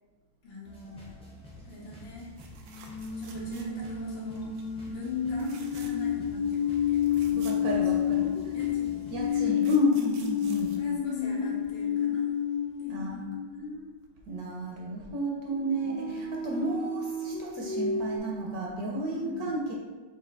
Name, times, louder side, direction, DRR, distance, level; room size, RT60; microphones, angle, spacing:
voice 1, 0.4-1.1 1.6-2.3 3.2-4.5 4.9-7.6 8.2-9.6 10.8-12.2 12.8-13.9 15.7-16.2 19.1-19.5, left 2 dB, 90° left, -4 dB, 1.8 m, -43 dB
sound 1, 0.6-9.4, equal, 10° left, 0.3 m, -49 dB
sound 2, 2.4-4.0 4.3-4.7 5.3-6.2 6.5-6.6 6.8-8.3 9.1-11.7 13.6-13.7 14.0-14.1, right 6 dB, 90° right, 1.3 m, -52 dB
sound 3, 2.7-13.7 15.5-18.2, left 8 dB, 70° left, 1.1 m, -30 dB
voice 2, 7.4-8.5 9.1-10.7 12.9-13.2 14.3-19.7, right 1 dB, 65° right, -2 dB, 1.1 m, -32 dB
4.4 x 2.7 x 3.9 m, 1.3 s
omnidirectional pair, 2.0 m